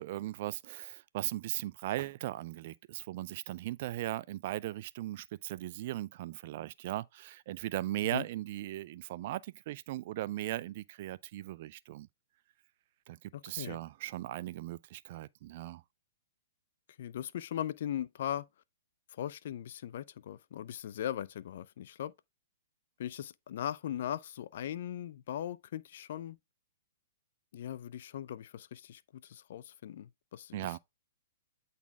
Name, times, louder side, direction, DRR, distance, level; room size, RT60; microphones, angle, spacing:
voice 1, 0.0-12.1 13.1-15.8 30.5-30.8, right 15 dB, 50° right, 0.4 m, -38 dB
voice 2, 13.3-13.8 17.0-18.5 19.1-22.1 23.0-26.4 27.5-30.8, left 10 dB, 65° left, 0.4 m, -39 dB
8.5 x 4.0 x 3.5 m
hypercardioid pair, 130°, 0 cm